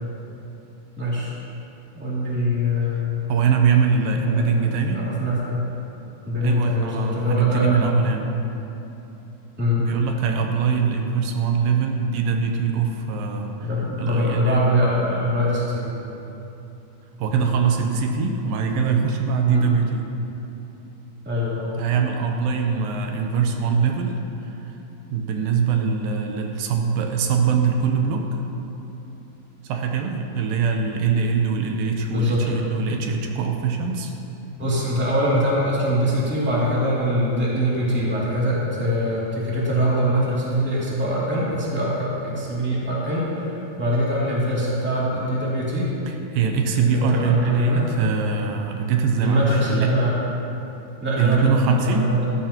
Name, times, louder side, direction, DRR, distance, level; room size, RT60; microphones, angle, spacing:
voice 1, 1.0-1.3 1.9-3.2 4.1-5.6 6.2-7.8 9.6-9.8 13.6-15.9 17.3-17.5 19.4-19.6 21.2-21.7 32.1-32.4 34.6-45.9 46.7-47.8 49.2-50.2 51.0-51.5 51.8-52.3, equal, 5° right, -7 dB, 1.8 m, -23 dB
voice 2, 3.3-5.1 6.4-8.3 9.8-13.7 14.0-14.6 17.2-20.1 21.8-24.2 24.4-24.7 25.1-28.4 29.6-34.1 46.0-49.9 51.2-52.1, right 5 dB, 80° right, 3 dB, 2.5 m, -22 dB
16.0 x 13.0 x 3.0 m, 2.9 s
omnidirectional pair, 4.1 m